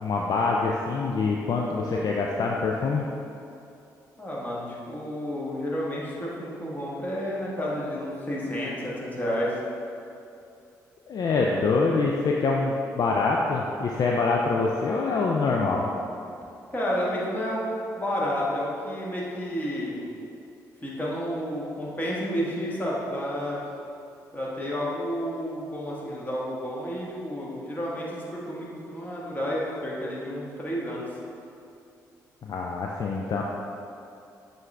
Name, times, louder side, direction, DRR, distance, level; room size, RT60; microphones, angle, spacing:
voice 1, 0.0-3.0 11.1-15.9 32.4-33.4, left 4 dB, 45° left, -1 dB, 0.4 m, -25 dB
voice 2, 4.2-9.5 16.7-20.1 20.8-23.6 24.3-31.1, equal, 20° left, -6 dB, 1.3 m, -31 dB
6.3 x 2.6 x 3.2 m, 2.7 s
hypercardioid pair, 40°, 9 cm